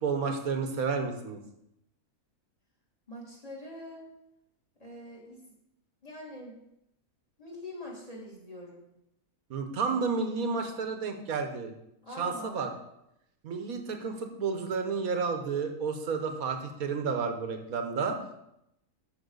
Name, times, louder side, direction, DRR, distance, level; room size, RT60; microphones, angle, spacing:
voice 1, 0.0-1.4 9.5-11.7 12.2-12.7 13.4-18.2, right 5 dB, 75° right, 5 dB, 1.5 m, -31 dB
voice 2, 3.1-4.1 4.8-5.4 6.0-6.6 7.4-8.8 12.0-12.6, left 1 dB, 25° left, -4 dB, 2.7 m, -44 dB
13.0 x 5.9 x 4.0 m, 0.83 s
omnidirectional pair, 1.5 m